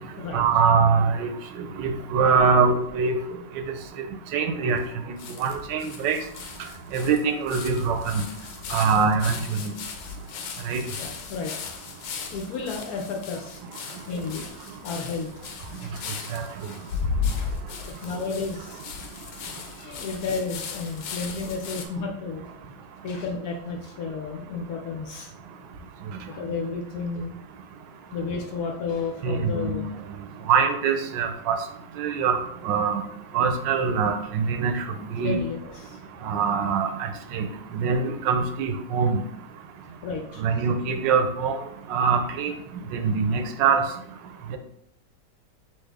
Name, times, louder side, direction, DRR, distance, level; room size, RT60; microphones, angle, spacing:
voice 1, 0.3-1.3 1.8-3.2 4.3-4.8 5.4-6.2 6.9-8.2 8.7-9.7 10.7-10.8 16.3-16.4 29.2-29.9 30.5-31.6 32.0-32.4 32.6-33.0 33.3-34.8 35.2-35.4 36.2-37.5 37.7-39.2 40.4-41.6 41.9-42.5 42.9-43.8 44.5-44.6, right 5 dB, 80° right, 7 dB, 1.3 m, -23 dB
sound 1, 2.1-3.0 3.5-3.6 3.8-3.9 4.8-4.9 5.2-21.9, left 5 dB, 85° left, 1.3 m, -36 dB
voice 2, 11.0-11.7 12.3-13.6 14.1-14.5 14.8-15.3 15.8-15.9 16.7-16.8 17.2-17.6 18.0-18.8 19.8-22.6 23.0-25.3 26.3-27.4 28.1-29.9 35.2-36.0 40.0-40.5, left 4 dB, 65° left, 2 dB, 1.0 m, -32 dB
4.4 x 3.2 x 3.5 m, 0.72 s
omnidirectional pair, 1.9 m